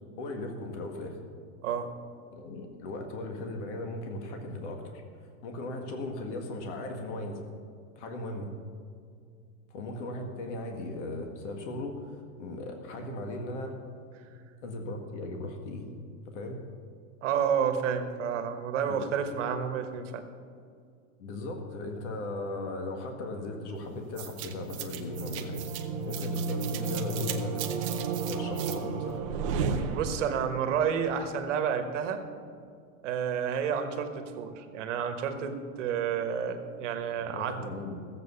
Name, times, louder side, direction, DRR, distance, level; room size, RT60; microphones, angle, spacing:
voice 1, 0.2-1.2 2.3-4.8 5.4-7.4 8.0-8.5 9.7-13.8 14.6-15.9 16.3-16.6 18.9-19.1 21.2-25.7 26.0-27.7 28.3-29.3 37.2-38.0, left 2 dB, 50° left, 4 dB, 1.8 m, -37 dB
voice 2, 17.2-20.2 29.9-32.2 33.0-37.6, right 7 dB, 55° right, 7 dB, 1.4 m, -30 dB
sound 1, 24.2-30.5, right 4 dB, 25° right, 0.5 m, -32 dB
15.0 x 7.8 x 7.0 m, 2.3 s
supercardioid pair, 175°, 44 cm